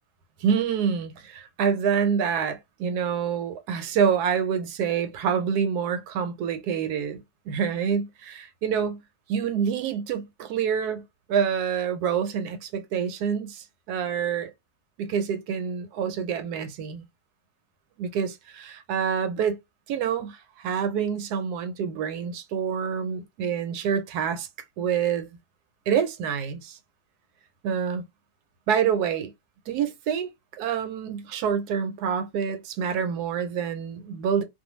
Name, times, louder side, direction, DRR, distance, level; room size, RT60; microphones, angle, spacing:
voice 1, 0.4-7.2 7.5-9.0 9.3-11.0 11.3-14.5 15.0-17.0 18.0-19.6 19.9-24.5 24.8-25.3 25.9-26.8 27.6-28.0 28.7-29.3 29.7-30.3 30.6-34.4, right 7 dB, 80° right, 1.1 m, -27 dB
2.5 x 2.2 x 2.9 m
omnidirectional pair, 1.7 m